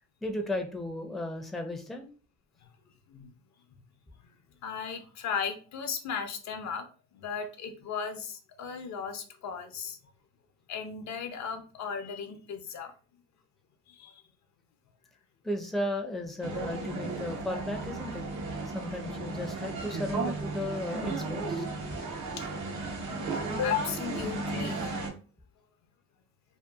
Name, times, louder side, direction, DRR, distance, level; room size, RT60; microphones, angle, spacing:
voice 1, 0.2-2.1 15.4-18.2 18.7-21.7, left 1 dB, ahead, 4 dB, 0.5 m, -35 dB
voice 2, 4.6-6.9 7.1-10.0 10.7-12.9 13.9-14.1 22.4-22.5 23.6-24.9, left 7 dB, 65° left, 7 dB, 0.6 m, -35 dB
sound 1, 16.4-25.1, right 3 dB, 75° right, 0.9 m, -35 dB
2.8 x 2.3 x 2.3 m, 0.37 s
cardioid pair, 90°, 30 cm